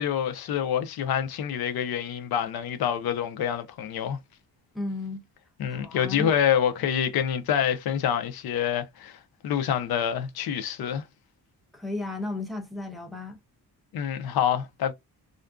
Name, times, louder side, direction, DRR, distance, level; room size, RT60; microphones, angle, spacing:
voice 1, 0.0-4.2 5.6-11.0 13.9-14.9, left 9 dB, 75° left, 0.6 m, -27 dB
voice 2, 4.7-5.2 5.7-6.3 11.7-13.4, left 2 dB, ahead, 0.4 m, -34 dB
2.5 x 2.2 x 2.3 m
wide cardioid pair, 145°, 37 cm